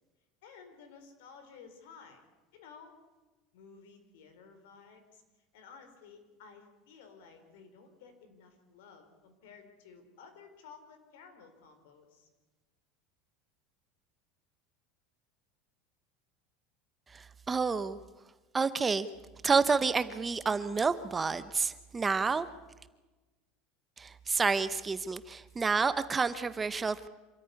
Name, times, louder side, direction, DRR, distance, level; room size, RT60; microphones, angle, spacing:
voice 1, 0.4-2.3 2.5-3.0 3.5-5.2 5.5-12.3, left 5 dB, 80° left, 7 dB, 4.7 m, -54 dB
voice 2, 17.1-18.0 18.5-19.1 19.4-22.5 24.0-27.1, right 4 dB, 15° right, 13 dB, 0.7 m, -29 dB
26.0 x 14.5 x 9.8 m, 1.2 s
cardioid pair, 170°, 0 cm